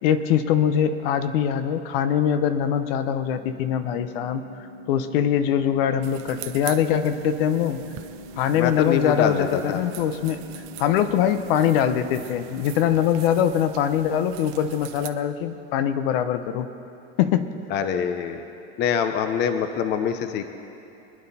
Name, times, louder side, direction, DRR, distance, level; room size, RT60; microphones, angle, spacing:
voice 1, 0.0-7.8 8.4-10.4 10.8-16.7 17.2-17.5, left 9 dB, 60° left, 10 dB, 0.9 m, -23 dB
sound 1, 3.3-13.3, left 1 dB, 85° left, 2.3 m, -43 dB
sound 2, 6.0-15.1, right 14 dB, 40° right, 0.7 m, -43 dB
voice 2, 8.5-9.8 17.7-18.4 18.8-20.5, left 7 dB, 30° left, 8 dB, 0.7 m, -24 dB
24.5 x 9.8 x 4.2 m, 2.7 s
supercardioid pair, 155°, 32 cm